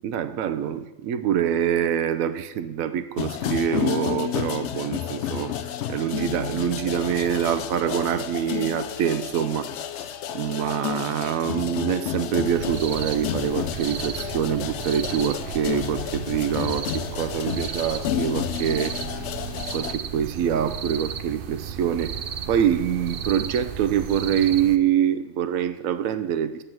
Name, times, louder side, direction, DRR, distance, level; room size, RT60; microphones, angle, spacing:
voice 1, 0.0-5.5 5.9-9.7 10.3-19.3 19.7-22.2 22.5-26.6, right 9 dB, 85° right, 1.1 m, -25 dB
sound 1, 3.2-19.9, left 9 dB, 65° left, 0.8 m, -31 dB
sound 2, 12.5-24.8, right 8 dB, 55° right, 0.7 m, -34 dB
9.5 x 6.0 x 7.8 m
omnidirectional pair, 1.4 m